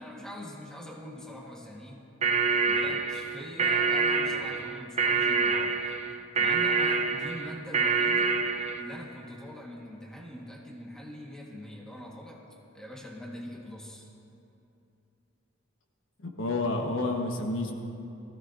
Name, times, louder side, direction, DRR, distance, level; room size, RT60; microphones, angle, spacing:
voice 1, 0.0-2.1 2.6-5.8 6.4-8.4 8.8-12.5 12.7-14.1, equal, 5° left, -3 dB, 1.4 m, -43 dB
sound 1, 2.2-8.8, right 4 dB, 35° right, 0.5 m, -26 dB
voice 2, 16.2-17.7, left 2 dB, 75° left, 2 dB, 1.2 m, -29 dB
19.5 x 15.5 x 2.6 m, 2.8 s
head